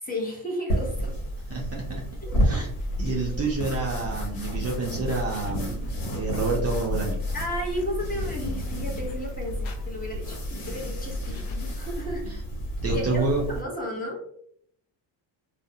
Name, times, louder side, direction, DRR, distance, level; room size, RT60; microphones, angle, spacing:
voice 1, 0.0-1.2 2.2-2.3 3.2-3.4 7.3-12.2 12.9-14.3, equal, 20° left, -2 dB, 0.7 m, -33 dB
sound 1, 0.7-13.6, right 1 dB, 75° left, 1.1 m, -31 dB
voice 2, 1.5-1.8 2.4-2.7 3.0-7.3 11.3-11.4 12.2-12.3 12.8-13.5, right 3 dB, 30° right, -2 dB, 0.5 m, -29 dB
sound 2, 2.4-12.3, left 3 dB, 60° left, 0.6 m, -36 dB
2.4 x 2.0 x 2.6 m, 0.65 s
cardioid pair, 115°, 49 cm